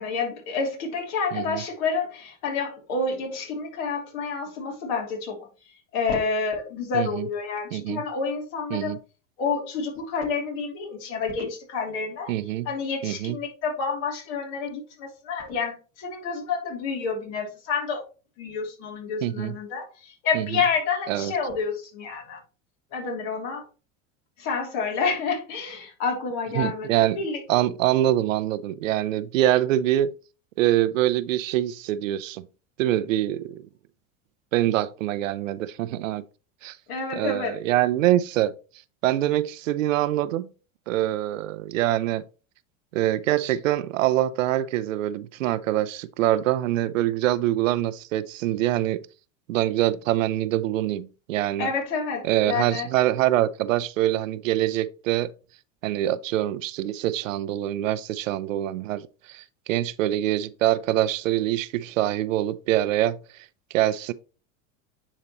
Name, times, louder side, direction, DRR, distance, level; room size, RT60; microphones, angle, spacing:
voice 1, 0.0-5.5 5.9-9.0 9.4-12.3 12.6-18.0 18.4-22.4 22.9-23.6 24.4-26.9 27.2-27.4 36.9-37.5 51.6-52.9, left 5 dB, 65° left, 3.1 m, -29 dB
voice 2, 1.3-1.6 6.9-7.3 7.7-8.0 8.7-9.0 12.3-12.7 13.0-13.4 19.2-19.5 20.3-20.6 21.1-21.3 26.5-27.2 27.5-30.1 30.6-32.5 32.8-33.6 34.5-36.2 36.6-36.8 37.2-38.5 39.0-40.5 40.9-42.2 42.9-49.0 49.5-51.7 52.2-55.3 55.8-63.2 63.7-64.1, right 13 dB, 90° right, 0.7 m, -24 dB
9.9 x 4.1 x 3.0 m
supercardioid pair, 105°, 38 cm